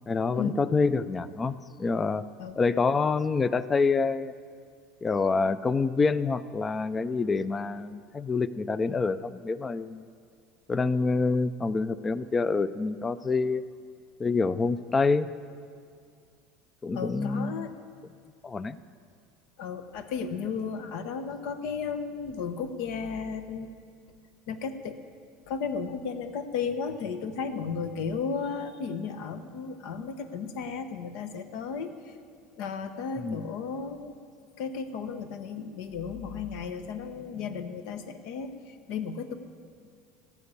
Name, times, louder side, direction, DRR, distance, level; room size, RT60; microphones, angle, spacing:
voice 1, 0.1-2.2 2.6-4.3 5.0-10.1 10.7-13.6 14.2-15.3 16.8-17.7 18.4-18.8 33.2-33.4, left 4 dB, 20° left, 15 dB, 0.4 m, -27 dB
voice 2, 16.9-17.7 19.6-23.7 24.5-25.0 25.5-32.2 32.5-34.2 34.6-39.3, left 5 dB, 70° left, 9 dB, 1.0 m, -34 dB
15.0 x 5.9 x 8.3 m, 2.2 s
supercardioid pair, 115°, 0 cm